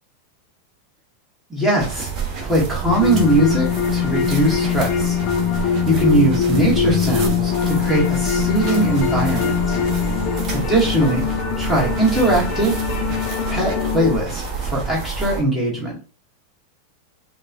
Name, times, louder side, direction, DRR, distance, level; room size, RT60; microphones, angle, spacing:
voice 1, 1.5-2.1 2.4-3.7 3.9-5.2 5.9-9.8 10.5-11.3 11.6-12.8 13.5-15.9, right 1 dB, 5° right, -6 dB, 2.2 m, -20 dB
sound 1, 1.8-15.4, right 4 dB, 30° right, 1.3 m, -28 dB
sound 2, 2.9-14.2, left 8 dB, 40° left, 0.7 m, -22 dB
5.2 x 2.7 x 2.6 m, 0.34 s
figure-of-eight pair, 90°, 0 cm